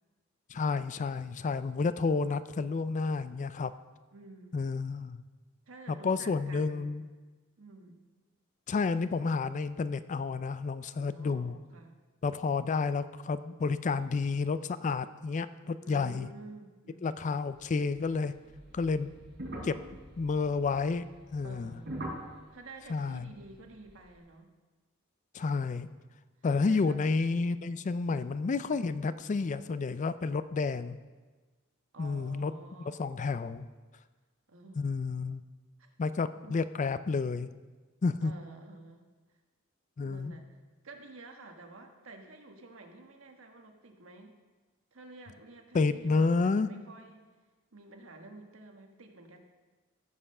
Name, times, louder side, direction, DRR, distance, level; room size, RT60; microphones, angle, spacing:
voice 1, 0.5-3.7 4.5-5.2 6.0-7.1 8.7-11.6 12.2-16.3 17.0-18.3 18.7-19.1 19.6-19.8 20.2-21.1 21.3-21.7 22.9-23.3 25.3-25.9 26.4-31.0 32.0-32.5 33.0-33.7 34.8-35.4 36.0-37.5 38.0-38.3 40.0-40.3 45.7-46.7, left 4 dB, 35° left, 14 dB, 0.4 m, -30 dB
voice 2, 4.1-4.6 5.7-7.0 7.6-8.0 11.0-12.0 15.8-17.4 21.4-22.0 22.5-24.5 26.6-27.0 28.1-28.3 31.9-33.2 34.5-34.9 35.8-35.9 36.4-36.5 38.2-39.0 40.0-40.6 40.8-44.4 44.9-47.2 47.7-49.4, right 2 dB, 70° right, 4 dB, 1.3 m, -50 dB
sound 1, 17.5-24.1, right 1 dB, 55° right, 3.8 m, -45 dB
14.5 x 5.6 x 6.6 m, 1.3 s
head